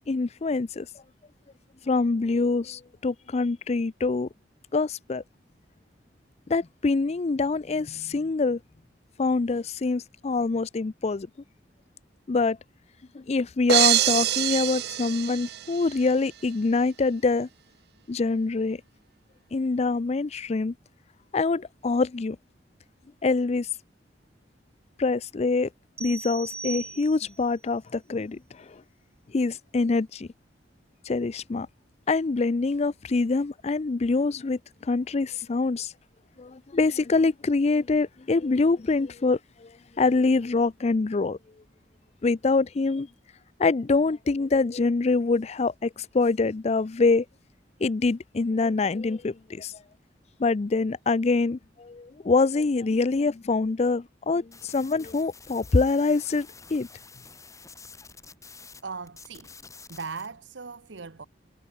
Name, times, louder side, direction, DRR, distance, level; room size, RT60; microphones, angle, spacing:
voice 1, 0.1-0.9 1.9-4.3 4.7-5.2 6.5-8.6 9.2-11.3 12.3-12.6 13.1-17.5 18.1-18.8 19.5-20.7 21.3-22.4 23.2-23.7 25.0-25.7 26.0-28.4 29.3-30.3 31.1-31.7 32.1-35.9 36.4-39.7 40.0-41.4 42.2-43.1 43.6-47.2 47.8-49.7 50.4-56.9, left 3 dB, 35° left, 0.4 m, -25 dB
sound 1, 13.7-16.0, right 13 dB, 60° right, 0.5 m, -24 dB
sound 2, 26.0-27.5, right 4 dB, 15° right, 3.7 m, -38 dB
sound 3, 54.5-58.8 59.1-60.3, left 4 dB, 20° left, 6.1 m, -49 dB
voice 2, 58.8-59.5 59.9-61.3, right 5 dB, 85° right, 1.0 m, -38 dB
head